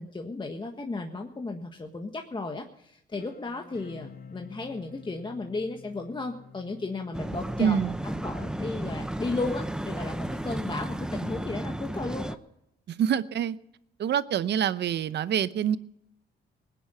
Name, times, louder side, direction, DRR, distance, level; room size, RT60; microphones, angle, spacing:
voice 1, 0.0-7.8 8.0-12.3, left 3 dB, 25° left, 1.5 m, -34 dB
sound 1, 3.1-9.0, left 5 dB, 55° left, 4.4 m, -50 dB
sound 2, 7.1-12.4, right 1 dB, 5° right, 0.8 m, -33 dB
voice 2, 7.6-7.9 12.9-13.6 14.0-15.8, right 9 dB, 60° right, 0.8 m, -26 dB
19.0 x 10.0 x 5.6 m
cardioid pair, 85°, 20 cm